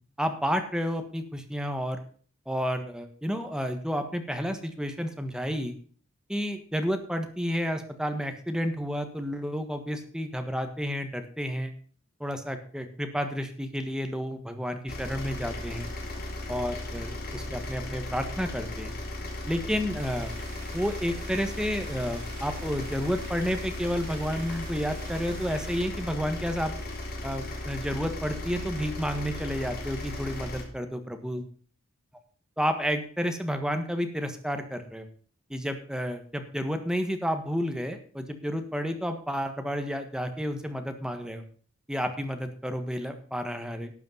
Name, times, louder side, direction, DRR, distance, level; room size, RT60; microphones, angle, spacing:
voice 1, 0.2-2.0 2.4-5.8 6.3-11.7 12.2-15.9 16.5-18.9 19.5-20.3 20.7-26.7 27.2-31.4 32.6-35.0 35.5-41.4 41.9-43.9, equal, 5° right, 6 dB, 1.5 m, -31 dB
sound 1, 14.9-30.6, left 1 dB, 50° left, 3.6 m, -36 dB
sound 2, 19.9-25.8, right 5 dB, 35° right, 7.3 m, -48 dB
12.0 x 8.5 x 5.6 m, 0.43 s
head